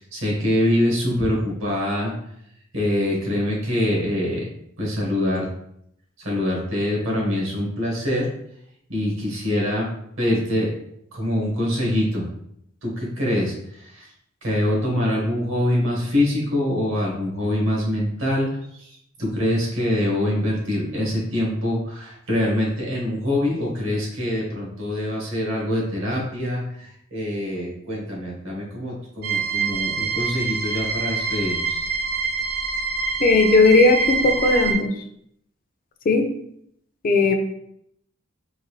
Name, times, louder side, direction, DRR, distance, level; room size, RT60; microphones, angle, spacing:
voice 1, 0.0-2.1 2.7-4.4 4.8-5.5 6.2-8.3 8.9-9.9 10.2-10.7 11.1-12.3 12.8-14.0 14.4-31.8, left 1 dB, 75° right, -3 dB, 1.4 m, -24 dB
sound 1, 29.2-34.7, right 4 dB, 55° right, 0.6 m, -25 dB
voice 2, 33.2-34.9 36.1-36.3 37.0-37.3, left 3 dB, 45° left, 5 dB, 0.4 m, -17 dB
3.9 x 2.6 x 3.0 m, 0.73 s
head